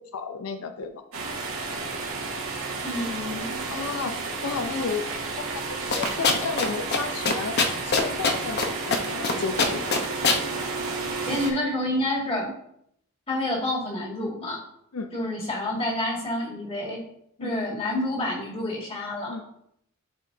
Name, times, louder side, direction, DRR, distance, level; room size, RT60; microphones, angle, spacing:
voice 1, 0.1-1.0 3.7-5.1 5.5-7.6 7.8-9.9 14.9-15.1 17.4-17.5 19.3-19.4, left 5 dB, 85° left, 7 dB, 0.5 m, -32 dB
sound 1, 1.1-11.5, right 3 dB, 85° right, 1.9 m, -32 dB
voice 2, 2.8-3.8 4.7-4.9 11.3-12.5 13.3-14.6 15.1-17.0 17.4-19.4, left 1 dB, 25° left, -3 dB, 2.0 m, -29 dB
sound 2, 5.9-6.7 6.9-7.0 7.3-8.7 8.9-9.3 9.6-10.4, left 4 dB, 50° left, 0.8 m, -22 dB
12.0 x 4.7 x 2.7 m, 0.73 s
head